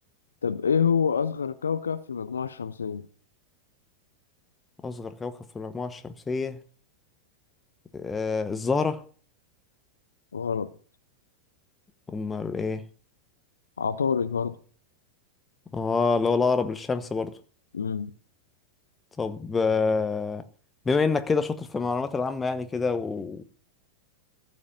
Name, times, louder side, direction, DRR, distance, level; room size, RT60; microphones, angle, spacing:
voice 1, 0.4-3.1 10.3-10.7 13.8-14.6 17.7-18.1, left 6 dB, 70° left, 0.6 m, -27 dB
voice 2, 4.8-6.6 7.9-9.0 12.1-12.8 15.7-17.3 19.2-20.4 20.8-23.4, left 4 dB, 15° left, 1.0 m, -27 dB
14.5 x 5.2 x 6.9 m
figure-of-eight pair, 90°, 0 cm